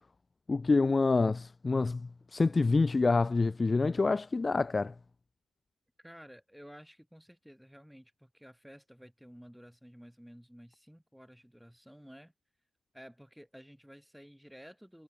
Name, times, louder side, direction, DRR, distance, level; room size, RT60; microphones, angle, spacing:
voice 1, 0.5-4.9, left 3 dB, 25° left, 0.3 m, -27 dB
voice 2, 6.0-12.3 12.9-15.0, equal, ahead, 7.9 m, -53 dB
cardioid pair, 90°, 0 cm